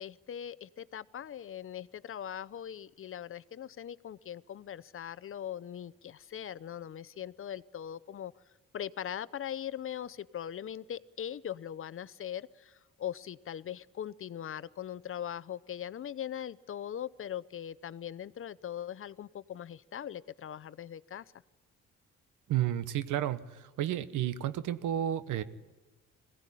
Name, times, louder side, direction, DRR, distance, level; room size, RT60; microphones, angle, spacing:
voice 1, 0.0-8.3 8.7-21.3, left 10 dB, 45° left, 18 dB, 0.6 m, -40 dB
voice 2, 22.5-25.4, right 11 dB, 85° right, 13 dB, 1.1 m, -31 dB
22.0 x 16.5 x 10.0 m, 1.2 s
cardioid pair, 90°, 30 cm